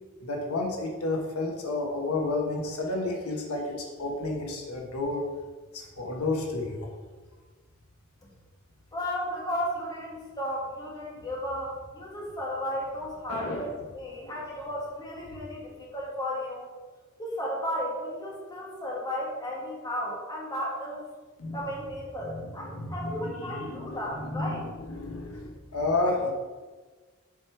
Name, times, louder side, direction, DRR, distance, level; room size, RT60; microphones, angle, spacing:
voice 1, 0.2-5.2 5.7-6.9 13.3-13.8 14.2-14.4 21.4-21.6 22.2-26.3, left 2 dB, 80° left, 1 dB, 1.2 m, -31 dB
voice 2, 8.9-16.7 17.2-21.1 21.5-24.6, equal, 15° left, -4 dB, 1.8 m, -34 dB
7.4 x 5.1 x 4.6 m, 1.4 s
head